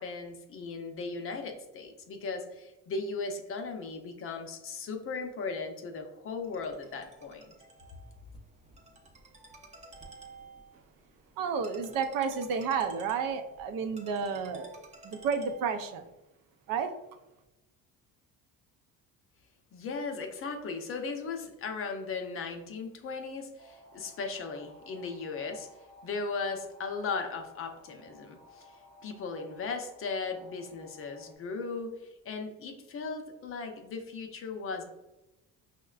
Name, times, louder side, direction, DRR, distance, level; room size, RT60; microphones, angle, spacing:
voice 1, 0.0-7.5 19.7-25.7 26.0-28.7 29.0-34.8, left 4 dB, 40° left, 5 dB, 0.5 m, -37 dB
Ringtone, 6.4-16.0, right 3 dB, 20° right, 0.5 m, -52 dB
voice 2, 11.4-16.0 16.7-16.9, right 6 dB, 80° right, 8 dB, 0.5 m, -31 dB
sound 1, 23.6-31.4, left 1 dB, 50° right, 0.9 m, -56 dB
5.4 x 2.2 x 2.3 m, 0.97 s
cardioid pair, 135°, 33 cm